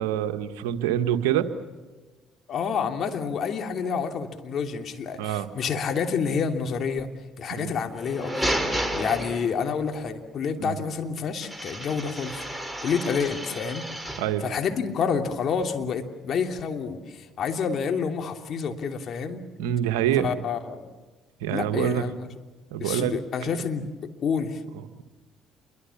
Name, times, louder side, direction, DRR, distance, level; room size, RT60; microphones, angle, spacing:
voice 1, 0.0-1.5 5.2-5.5 7.5-7.7 10.6-10.7 14.2-14.4 19.6-20.3 21.4-22.0 22.7-23.1, right 11 dB, 80° right, 8 dB, 1.5 m, -25 dB
voice 2, 2.5-7.1 7.4-8.6 9.0-12.4 12.8-13.9 14.4-19.4 20.2-20.9 21.5-22.4 22.8-24.6, left 6 dB, 55° left, 5 dB, 2.9 m, -28 dB
sound 1, 7.9-9.9 11.4-14.4, equal, ahead, 3.7 m, -31 dB
28.5 x 23.0 x 7.2 m, 1.3 s
hypercardioid pair, 60°, 0 cm